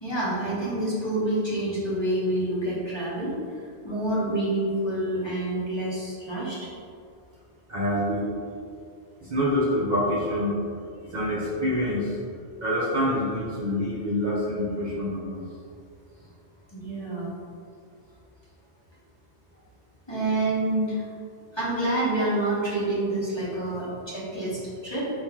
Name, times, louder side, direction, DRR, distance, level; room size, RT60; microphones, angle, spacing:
voice 1, 0.0-3.4 3.8-6.7 16.7-17.3 20.1-21.1 21.5-25.1, right 1 dB, 25° left, -8 dB, 1.0 m, -27 dB
voice 2, 7.7-8.3 9.2-10.6 11.0-12.2 12.6-15.4, left 1 dB, 45° right, -7 dB, 0.8 m, -26 dB
4.7 x 3.0 x 3.6 m, 2.4 s
omnidirectional pair, 1.2 m